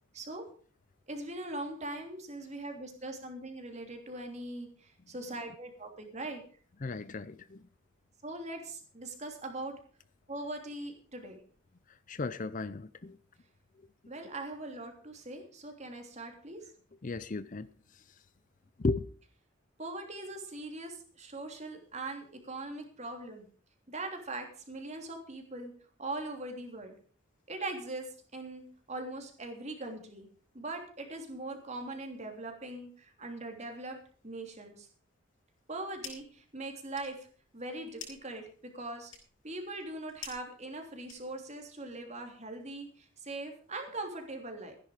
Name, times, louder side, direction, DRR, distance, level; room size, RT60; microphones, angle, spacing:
voice 1, 0.1-0.4 1.1-6.4 8.2-9.7 10.3-11.4 14.1-16.7 19.8-23.4 23.9-25.7 26.0-26.9 27.5-30.3 30.5-34.0 34.2-34.9 35.7-37.3 37.5-39.1 39.4-44.8, right 2 dB, 35° right, 3.2 m, -41 dB
voice 2, 6.8-7.7 12.1-13.2 17.0-17.7 18.8-19.1, left 3 dB, 40° left, 0.6 m, -35 dB
sound 1, 35.5-36.4 36.7-41.6, left 6 dB, 75° left, 6.4 m, -49 dB
15.5 x 10.5 x 5.0 m
head